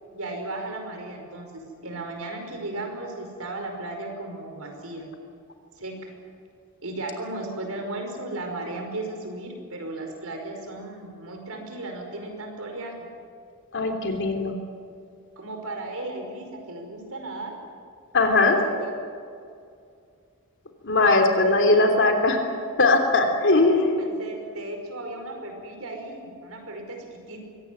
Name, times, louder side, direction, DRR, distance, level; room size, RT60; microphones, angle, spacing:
voice 1, 0.1-5.1 5.8-6.1 6.8-13.1 15.4-17.5 18.5-18.9 24.0-27.5, right 2 dB, 70° right, 3 dB, 5.3 m, -35 dB
voice 2, 13.7-14.6 18.1-18.6 20.8-22.4 22.8-23.9, left 2 dB, 55° left, 4 dB, 3.2 m, -20 dB
23.5 x 18.0 x 9.5 m, 2.4 s
head